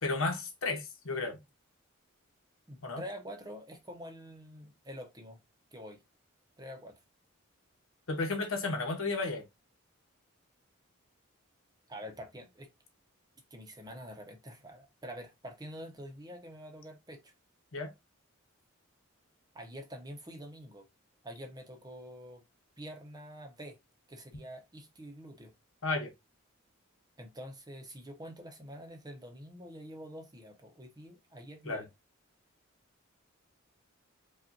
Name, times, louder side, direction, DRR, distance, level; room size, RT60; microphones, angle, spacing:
voice 1, 0.0-1.4 2.8-3.0 8.1-9.4 17.7-17.9 25.8-26.1 31.6-31.8, left 3 dB, 80° left, 1.1 m, -33 dB
voice 2, 2.7-5.4 5.7-6.0 6.6-7.0 11.9-12.7 13.5-17.3 19.5-20.9 21.2-22.4 22.8-23.8 24.1-25.5 27.2-31.9, equal, 20° right, 0.7 m, -46 dB
5.1 x 2.4 x 2.7 m
head